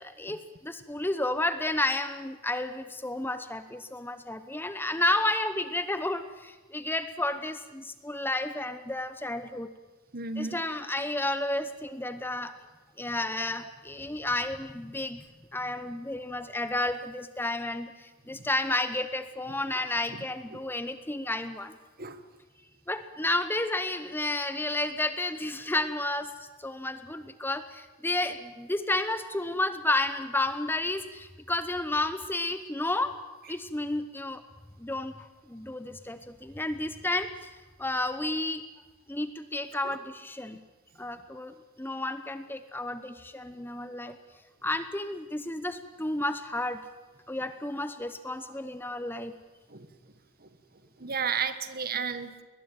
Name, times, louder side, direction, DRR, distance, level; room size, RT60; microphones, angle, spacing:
voice 1, 0.0-9.7 10.4-12.5 13.0-15.2 15.5-21.8 22.9-26.3 26.6-33.1 33.5-34.4 34.8-37.5 37.8-38.6 39.1-40.6 41.0-44.2 44.6-46.8 47.3-49.3, left 2 dB, 10° left, 10 dB, 0.8 m, -31 dB
voice 2, 10.1-10.6 20.5-20.6 22.0-22.2 39.8-40.0 49.7-49.9 50.4-50.5 51.0-52.4, right 6 dB, 45° right, 11 dB, 1.4 m, -33 dB
21.0 x 21.0 x 9.1 m, 1.2 s
head